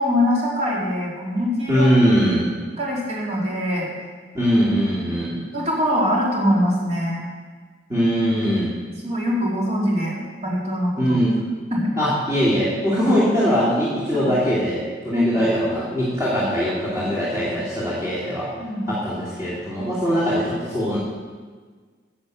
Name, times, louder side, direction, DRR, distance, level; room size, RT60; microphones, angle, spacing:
voice 1, 0.0-1.9 2.8-3.9 5.5-7.3 9.0-11.2 11.7-11.9 13.0-13.1 14.1-14.3 15.1-15.4 18.6-18.9, equal, 35° right, -4 dB, 3.0 m, -23 dB
voice 2, 1.7-2.5 4.3-5.4 7.9-8.7 11.0-11.3 12.0-18.5 18.9-21.0, equal, 15° right, -11 dB, 2.8 m, -21 dB
11.0 x 7.7 x 6.6 m, 1.5 s
head